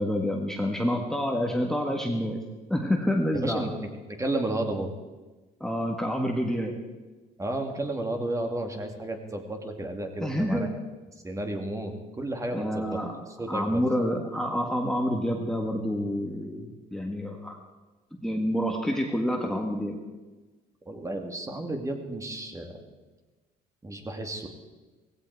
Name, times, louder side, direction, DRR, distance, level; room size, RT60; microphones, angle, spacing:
voice 1, 0.0-2.4 2.7-3.7 5.6-6.7 10.2-10.7 12.5-13.2 13.5-17.6 18.2-20.0, equal, 5° left, 1 dB, 1.7 m, -28 dB
voice 2, 3.4-3.7 4.1-4.9 7.4-10.7 11.2-13.0 13.3-13.8 20.9-22.8 23.8-24.5, right 1 dB, 20° right, 4 dB, 2.1 m, -32 dB
16.5 x 16.0 x 4.7 m, 1.2 s
cardioid pair, 110°, 17 cm